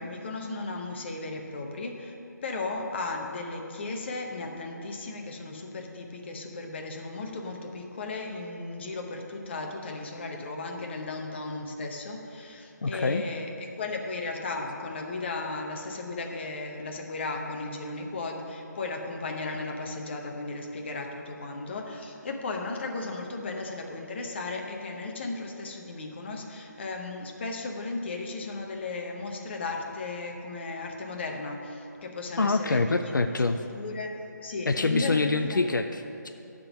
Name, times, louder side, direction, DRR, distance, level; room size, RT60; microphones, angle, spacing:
voice 1, 0.0-2.2 2.4-33.2 33.5-35.6, left 3 dB, 35° left, 2 dB, 0.9 m, -35 dB
voice 2, 12.8-13.2 32.4-33.6 34.7-36.3, left 3 dB, 80° left, 7 dB, 0.4 m, -25 dB
11.0 x 3.8 x 6.1 m, 2.9 s
figure-of-eight pair, 155°, 10 cm